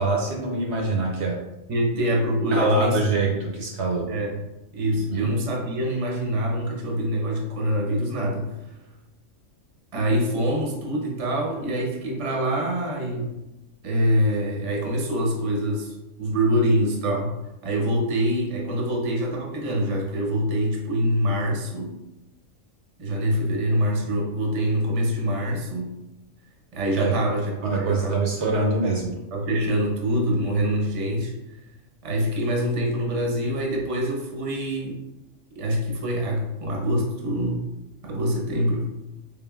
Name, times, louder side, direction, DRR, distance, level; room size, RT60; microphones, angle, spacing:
voice 1, 0.0-1.4 2.5-4.0 5.1-5.3 27.0-27.1 27.6-29.1, right 2 dB, 65° right, 0 dB, 0.8 m, -24 dB
voice 2, 1.7-3.4 4.1-4.4 4.7-8.5 9.9-13.3 13.8-17.3 17.6-21.9 23.0-25.9 26.7-28.2 29.3-31.3 32.0-35.0 35.5-37.6 38.0-38.9, equal, 35° right, -1 dB, 0.6 m, -25 dB
3.9 x 3.7 x 2.3 m, 0.95 s
omnidirectional pair, 1.4 m